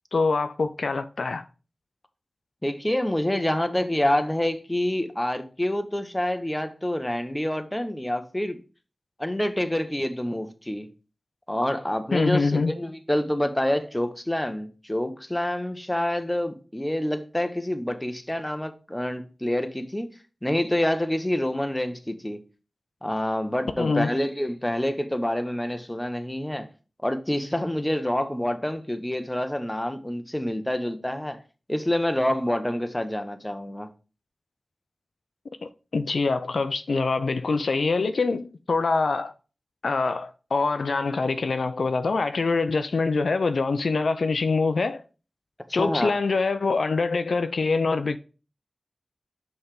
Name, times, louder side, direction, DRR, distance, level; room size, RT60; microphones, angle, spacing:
voice 1, 0.1-1.4 12.1-12.7 23.8-24.1 35.6-39.3 39.8-45.0 45.7-48.2, left 4 dB, 85° left, 0.4 m, -24 dB
voice 2, 2.6-8.6 9.2-10.9 11.5-20.1 20.4-22.4 23.0-26.7 27.0-31.4 31.7-33.9 45.8-46.1, left 1 dB, 15° left, 0.9 m, -27 dB
5.5 x 3.4 x 5.8 m
cardioid pair, 40°, 0 cm